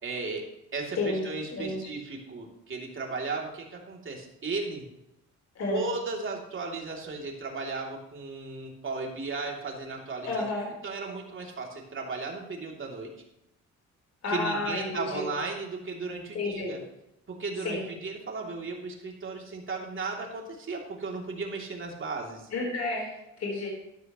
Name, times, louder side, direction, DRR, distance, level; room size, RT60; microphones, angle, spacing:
voice 1, 0.0-4.9 5.7-10.4 10.8-13.1 14.3-16.8 17.3-22.5, right 3 dB, 40° right, 0 dB, 3.0 m, -35 dB
voice 2, 1.5-1.8 5.5-5.8 10.2-10.7 14.2-15.3 16.3-16.7 17.6-17.8 22.5-23.7, left 2 dB, 55° left, -1 dB, 4.1 m, -31 dB
12.0 x 12.0 x 3.1 m, 0.87 s
cardioid pair, 90°, 30 cm